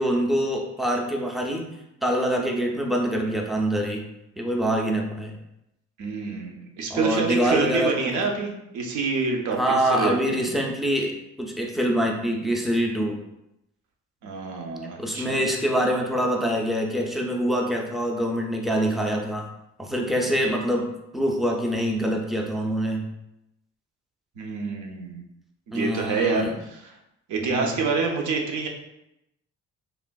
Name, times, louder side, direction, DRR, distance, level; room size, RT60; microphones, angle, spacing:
voice 1, 0.0-1.7 2.0-4.1 4.4-5.4 6.9-8.3 9.5-13.2 15.0-19.5 19.8-23.1 25.7-26.6 27.5-27.8, equal, ahead, 0 dB, 0.4 m, -25 dB
voice 2, 6.0-9.6 9.9-10.2 14.2-15.4 24.4-25.2 25.7-26.5 27.3-28.7, right 4 dB, 75° right, 1 dB, 0.6 m, -27 dB
3.3 x 2.4 x 2.2 m, 0.86 s
cardioid pair, 90°, 30 cm